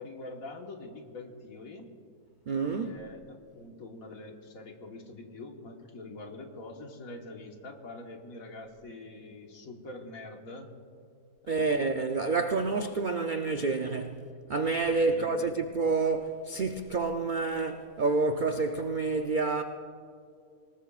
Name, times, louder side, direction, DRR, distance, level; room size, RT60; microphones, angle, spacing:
voice 1, 0.0-1.9 2.7-10.7 11.4-11.8 14.9-15.5, left 2 dB, 65° left, 1.8 m, -45 dB
voice 2, 2.5-2.9 11.5-14.2 14.5-19.6, right 3 dB, 70° right, 0.4 m, -28 dB
25.5 x 18.5 x 2.4 m
omnidirectional pair, 1.6 m